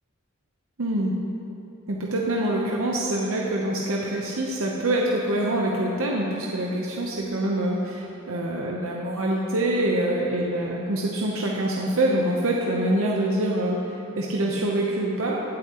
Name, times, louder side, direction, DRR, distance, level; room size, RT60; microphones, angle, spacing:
voice 1, 0.8-1.1 1.9-15.4, right 1 dB, 70° right, -2 dB, 0.9 m, -25 dB
16.5 x 8.3 x 3.0 m, 2.8 s
head